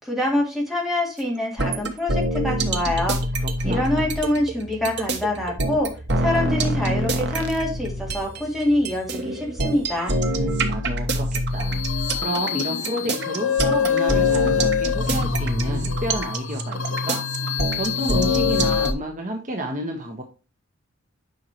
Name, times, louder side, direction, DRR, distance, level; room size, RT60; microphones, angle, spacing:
voice 1, 0.0-3.2 3.6-5.9 6.2-10.1, left 1 dB, ahead, -3 dB, 2.9 m, -25 dB
sound 1, 1.6-8.4 8.8-18.9, right 1 dB, 60° right, 1.2 m, -25 dB
voice 2, 3.2-4.2 10.1-17.2 17.5-20.2, right 1 dB, 40° right, 2 dB, 1.3 m, -31 dB
sound 2, 4.0-10.0, right 1 dB, 25° left, 2.0 m, -43 dB
sound 3, 11.6-18.9, left 7 dB, 80° left, 0.8 m, -25 dB
9.4 x 5.7 x 3.0 m, 0.32 s
head